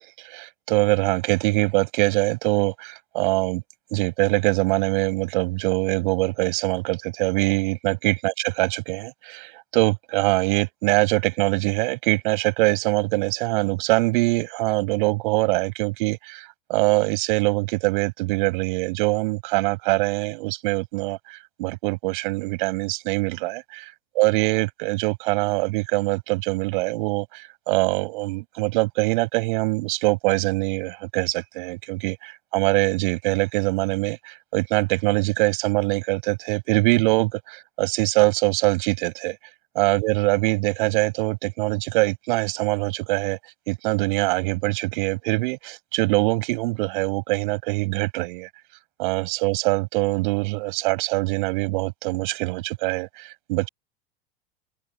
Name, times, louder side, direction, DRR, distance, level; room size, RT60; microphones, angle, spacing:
voice 1, 0.3-3.6 3.9-23.9 24.2-39.4 39.8-43.4 43.7-48.5 49.0-53.7, right 24 dB, 60° right, 7.2 m, -23 dB
figure-of-eight pair, 85°, 29 cm